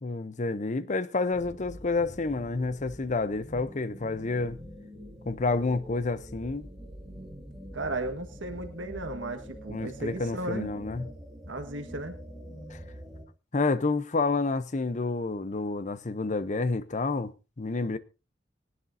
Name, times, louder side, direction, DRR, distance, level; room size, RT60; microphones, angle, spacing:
voice 1, 0.0-4.6 5.3-6.7 9.7-11.1 12.7-12.8 13.5-18.0, left 3 dB, 40° left, 0.7 m, -29 dB
sound 1, 1.3-13.2, equal, ahead, 3.6 m, -45 dB
voice 2, 7.7-10.7 11.5-12.2, right 2 dB, 80° right, 1.7 m, -35 dB
20.5 x 11.0 x 2.7 m
head